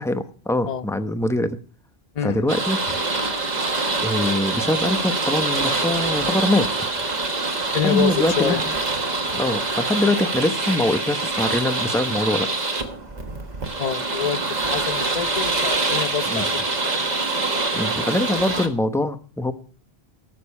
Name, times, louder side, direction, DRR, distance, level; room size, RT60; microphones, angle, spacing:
voice 1, 0.0-1.6 2.2-2.8 4.0-6.7 7.8-8.7 9.4-12.5 16.3-16.5 17.7-19.5, left 1 dB, 5° left, 0.8 m, -23 dB
voice 2, 2.1-2.5 7.7-8.6 9.3-9.4 13.8-17.0, left 8 dB, 45° left, 0.8 m, -27 dB
sound 1, 2.5-18.7, right 3 dB, 45° right, 1.6 m, -25 dB
19.5 x 6.9 x 5.5 m
omnidirectional pair, 1.0 m